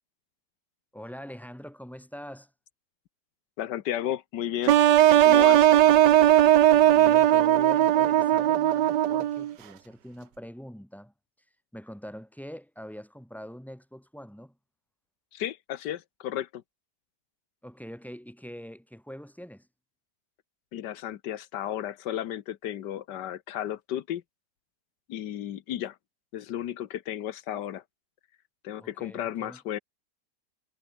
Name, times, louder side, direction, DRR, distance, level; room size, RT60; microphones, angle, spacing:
voice 1, 0.9-2.5 6.7-11.1 11.7-14.6 17.6-19.7 28.8-29.6, equal, ahead, 3.5 m, -43 dB
voice 2, 3.6-4.8 5.1-5.8 15.3-16.6 20.7-24.2 25.1-26.0 26.3-27.8 28.6-29.8, left 11 dB, 90° left, 1.5 m, -33 dB
sound 1, 4.7-9.5, right 12 dB, 80° right, 1.5 m, -18 dB
omnidirectional pair, 1.8 m